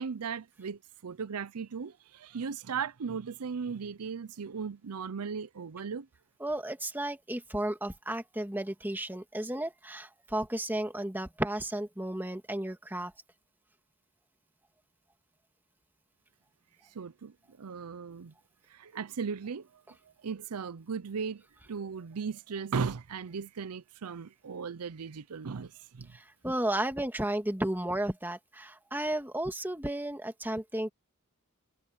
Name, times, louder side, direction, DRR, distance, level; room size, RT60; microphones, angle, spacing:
voice 1, 0.0-6.1 16.9-18.3 18.7-19.7 20.2-21.4 21.7-26.1, right 6 dB, 85° right, 0.6 m, -37 dB
voice 2, 6.4-13.1 26.1-30.9, right 1 dB, 10° right, 1.9 m, -33 dB
head